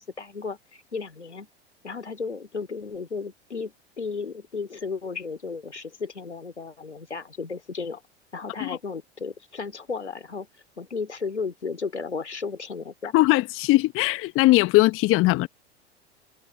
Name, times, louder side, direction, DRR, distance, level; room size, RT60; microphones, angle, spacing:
voice 1, 0.0-1.5 1.8-8.0 8.3-10.5 10.8-13.2, left 4 dB, 90° left, 2.8 m, -34 dB
voice 2, 13.1-15.5, left 19 dB, 40° left, 1.1 m, -20 dB
figure-of-eight pair, 85°, 33 cm